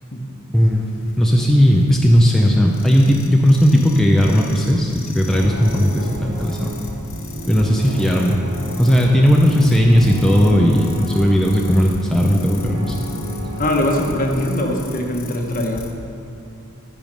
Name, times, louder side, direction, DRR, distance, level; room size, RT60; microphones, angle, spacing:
sound 1, 0.5-15.9, left 2 dB, 65° left, 1.0 m, -36 dB
voice 1, 0.5-0.9 1.2-6.7 7.5-8.4 8.8-13.0, equal, ahead, -2 dB, 0.6 m, -16 dB
sound 2, 5.3-14.9, right 1 dB, 75° right, 1.8 m, -33 dB
voice 2, 13.6-15.8, left 1 dB, 40° left, 1 dB, 1.2 m, -22 dB
12.0 x 6.9 x 5.3 m, 2.7 s
head